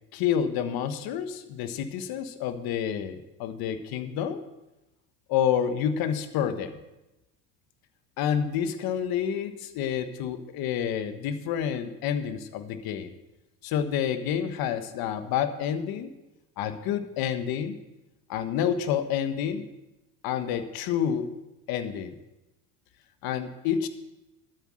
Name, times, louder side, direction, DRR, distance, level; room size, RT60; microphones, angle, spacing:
voice 1, 0.1-4.4 5.3-6.8 8.2-13.1 13.6-16.1 16.6-17.7 18.3-19.7 20.2-21.4 21.7-22.2 23.2-23.9, left 8 dB, 65° left, 10 dB, 1.3 m, -29 dB
13.0 x 8.1 x 6.3 m, 0.98 s
supercardioid pair, 95°, 40 cm